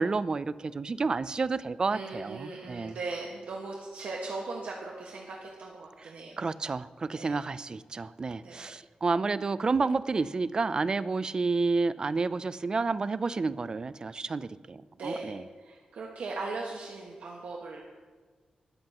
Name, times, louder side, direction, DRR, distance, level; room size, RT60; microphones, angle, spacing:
voice 1, 0.0-3.0 6.4-15.4, right 4 dB, 30° right, 15 dB, 0.4 m, -30 dB
voice 2, 1.9-6.4 7.1-7.4 8.4-8.7 15.0-17.8, right 3 dB, 80° right, -2 dB, 1.6 m, -39 dB
19.5 x 13.0 x 3.0 m, 1.5 s
wide cardioid pair, 155°, 3 cm